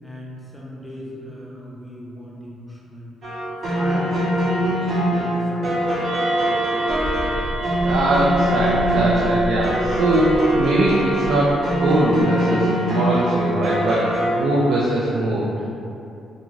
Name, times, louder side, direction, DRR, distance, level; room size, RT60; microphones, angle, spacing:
voice 1, 0.0-3.1 3.7-4.2 4.5-5.7, equal, 5° left, -5 dB, 0.6 m, -38 dB
sound 1, 3.2-14.3, right 1 dB, 50° right, 0.7 m, -22 dB
sound 2, 6.0-14.7, right 2 dB, 15° right, 1.0 m, -36 dB
Mechanical fan, 6.9-12.3, equal, 70° left, 0.6 m, -33 dB
voice 2, 7.8-14.1 14.4-15.7, right 1 dB, 80° right, -4 dB, 0.3 m, -21 dB
2.5 x 2.5 x 3.0 m, 2.7 s
cardioid pair, 90°, 0 cm